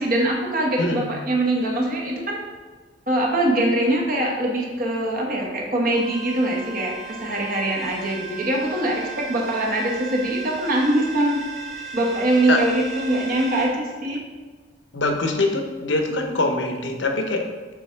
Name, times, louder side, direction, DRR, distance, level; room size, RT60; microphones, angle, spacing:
voice 1, 0.0-2.4 3.1-11.4 11.9-14.2, right 1 dB, 45° right, 0 dB, 1.1 m, -23 dB
sound 1, 5.9-13.7, right 5 dB, ahead, 1.2 m, -36 dB
voice 2, 14.9-17.5, left 2 dB, 70° left, 4 dB, 0.8 m, -23 dB
7.2 x 3.2 x 4.5 m, 1.4 s
head